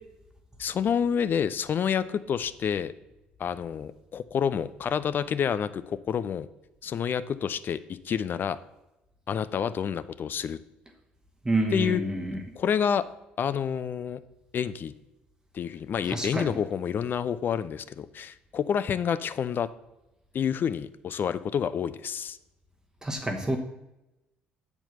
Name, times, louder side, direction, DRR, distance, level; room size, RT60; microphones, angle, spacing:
voice 1, 0.6-2.9 3.4-6.5 6.8-8.6 9.3-10.6 11.7-12.0 12.6-13.0 13.4-14.2 14.5-14.9 15.5-19.7 20.3-22.4, left 8 dB, 45° left, 14 dB, 0.5 m, -28 dB
voice 2, 11.4-12.4 16.1-16.5 23.0-23.6, right 2 dB, 15° right, 3 dB, 1.2 m, -28 dB
7.5 x 4.5 x 6.6 m, 0.93 s
figure-of-eight pair, 50°, 5 cm